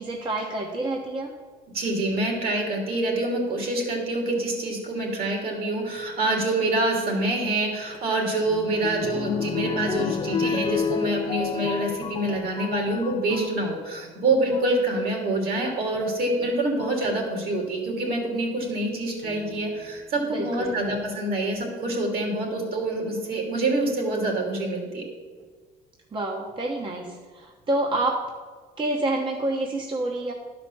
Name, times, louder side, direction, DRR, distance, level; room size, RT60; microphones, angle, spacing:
voice 1, 0.0-1.3 13.3-13.6 20.3-20.8 26.1-28.2 28.8-30.3, right 2 dB, 30° right, 0 dB, 1.1 m, -28 dB
voice 2, 1.7-25.0, right 2 dB, 60° right, 1 dB, 3.0 m, -26 dB
sound 1, 7.9-13.6 14.3-14.8 16.0-16.1 16.8-17.1 19.2-19.9 20.5-20.6 20.8-20.9, left 6 dB, 30° left, 0.4 m, -30 dB
11.5 x 5.1 x 6.9 m, 1.5 s
cardioid pair, 110°, 17 cm